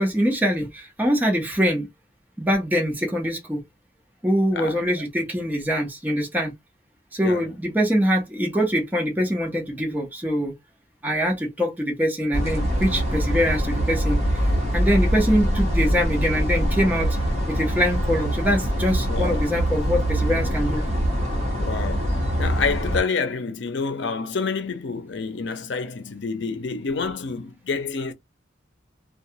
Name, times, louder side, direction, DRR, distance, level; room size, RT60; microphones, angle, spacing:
voice 1, 0.0-1.9 2.4-3.6 4.2-6.5 7.1-10.5 11.0-14.4 14.7-17.2 17.5-20.8, equal, 10° right, 0.7 m, -23 dB
voice 2, 4.5-4.9 7.2-7.4 19.0-19.5 21.6-28.1, left 4 dB, 75° left, 0.5 m, -28 dB
sound 1, 12.3-23.0, equal, 35° right, 1.0 m, -23 dB
2.3 x 2.3 x 2.7 m
head